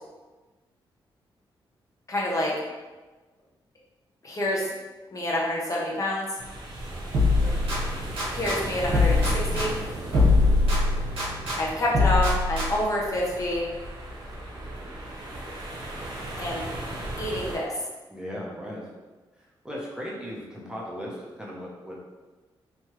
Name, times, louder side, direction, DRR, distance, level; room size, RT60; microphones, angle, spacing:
voice 1, 2.1-2.5 4.2-4.6 5.1-6.3 8.3-9.8 11.6-13.7 16.4-16.7 17.2-17.8, left 1 dB, 35° left, -4 dB, 0.7 m, -27 dB
sound 1, 6.4-17.6, right 1 dB, 50° right, 0.8 m, -36 dB
sound 2, 7.1-8.6 8.9-11.6 11.9-13.0, left 2 dB, 75° right, 1.3 m, -23 dB
voice 2, 7.3-7.7 10.1-10.5 18.1-18.8 19.6-22.0, equal, 10° right, -5 dB, 0.6 m, -37 dB
3.0 x 2.3 x 3.0 m, 1.2 s
cardioid pair, 95°, 9 cm